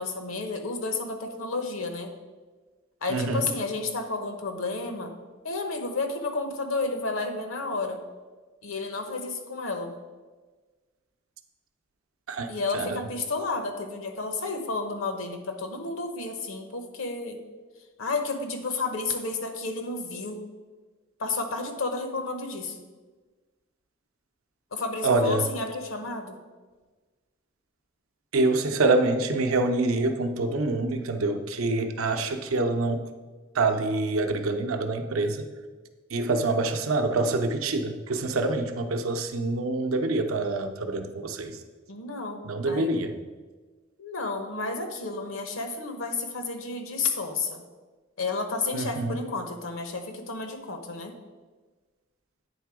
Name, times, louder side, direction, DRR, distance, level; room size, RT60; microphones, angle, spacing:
voice 1, 0.0-2.1 3.0-5.1 5.4-8.0 8.6-9.9 12.5-17.4 18.0-20.4 21.2-22.8 24.7-26.4 41.9-42.9 44.0-47.6 48.2-51.1, left 3 dB, 80° left, 6 dB, 0.9 m, -31 dB
voice 2, 3.1-3.4 12.3-12.5 12.7-13.0 25.0-25.5 28.3-33.1 33.5-35.5 36.1-41.6 42.4-43.1 48.7-49.2, right 2 dB, 85° right, 6 dB, 0.6 m, -26 dB
9.0 x 3.7 x 4.8 m, 1.3 s
head